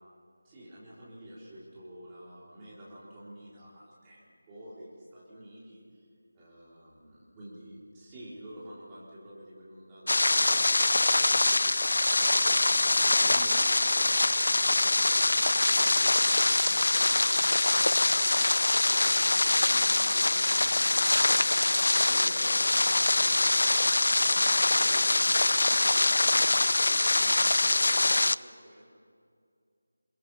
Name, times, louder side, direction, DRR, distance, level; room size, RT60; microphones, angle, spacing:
voice 1, 0.4-6.1 6.3-12.1 12.3-14.0 14.8-19.0 19.5-23.8 24.3-28.9, equal, 10° right, -9 dB, 3.8 m, -49 dB
sound 1, 10.1-28.3, left 2 dB, 60° left, 0.5 m, -24 dB
27.0 x 21.5 x 5.6 m, 2.3 s
figure-of-eight pair, 175°, 0 cm